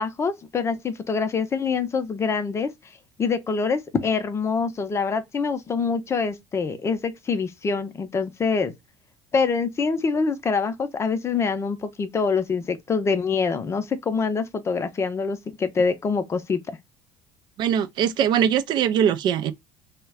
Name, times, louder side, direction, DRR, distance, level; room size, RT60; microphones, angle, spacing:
voice 1, 0.0-2.7 3.2-8.7 9.3-16.6, left 5 dB, 30° left, 0.6 m, -25 dB
voice 2, 17.6-19.5, right 9 dB, 55° right, 0.4 m, -21 dB
2.2 x 2.1 x 3.4 m
hypercardioid pair, 70°, 9 cm